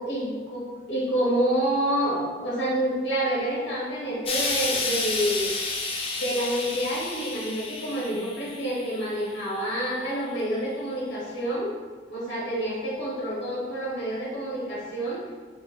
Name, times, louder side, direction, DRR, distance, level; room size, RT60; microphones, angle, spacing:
voice 1, 0.0-5.5 6.2-11.7 12.1-15.2, right 1 dB, 70° left, -7 dB, 1.4 m, -28 dB
Explosion, 4.3-9.6 10.4-10.5, left 3 dB, 30° left, 0.4 m, -31 dB
3.8 x 2.8 x 3.3 m, 1.5 s
head